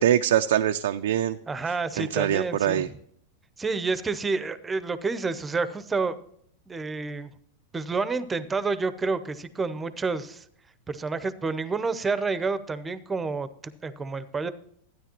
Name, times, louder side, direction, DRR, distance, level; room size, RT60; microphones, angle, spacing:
voice 1, 0.0-1.4 1.7-2.9, right 11 dB, 75° right, 7 dB, 0.4 m, -24 dB
voice 2, 1.5-2.8 3.6-6.2 6.7-7.3 7.7-10.4 10.9-14.5, right 4 dB, 15° right, 14 dB, 0.7 m, -29 dB
12.5 x 9.8 x 3.0 m, 0.66 s
hypercardioid pair, 105°, 0 cm